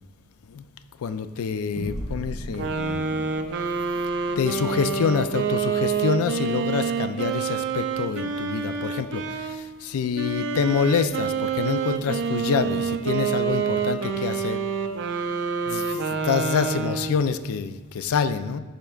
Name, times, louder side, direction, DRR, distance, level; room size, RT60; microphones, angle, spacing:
voice 1, 1.0-3.2 4.4-14.6 15.7-18.6, left 6 dB, 70° left, 12 dB, 0.4 m, -26 dB
sound 1, 1.7-6.6, equal, ahead, 1.3 m, -39 dB
sound 2, 2.5-9.6 10.1-17.3, right 6 dB, 55° right, 0.5 m, -27 dB
11.5 x 4.4 x 2.4 m, 1.3 s
head